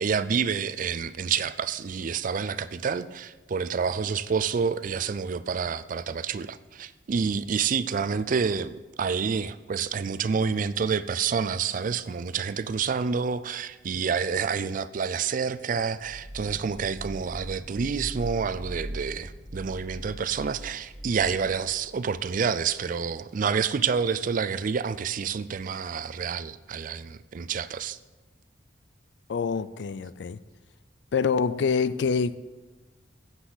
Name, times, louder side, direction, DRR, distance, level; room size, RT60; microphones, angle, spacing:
voice 1, 0.0-28.0, right 6 dB, 45° right, 0.4 m, -28 dB
sound 1, 16.0-22.7, equal, 10° right, 2.1 m, -41 dB
voice 2, 29.3-30.4 31.1-32.4, left 5 dB, 65° left, 0.4 m, -26 dB
15.0 x 8.0 x 4.0 m
head